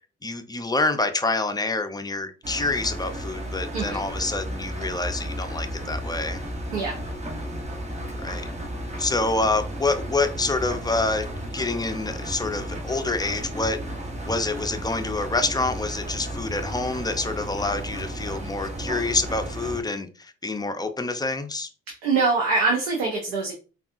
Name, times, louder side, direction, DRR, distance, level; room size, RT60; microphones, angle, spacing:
voice 1, 0.2-6.4 8.2-8.5 9.0-11.3 11.5-13.8 14.3-21.7, left 3 dB, 15° left, 7 dB, 0.5 m, -27 dB
Engine, 2.4-19.8, right 1 dB, 25° right, 0.8 m, -33 dB
voice 2, 22.0-23.5, right 4 dB, 90° right, -1 dB, 0.7 m, -23 dB
3.5 x 2.4 x 2.5 m, 0.35 s
hypercardioid pair, 55°, 29 cm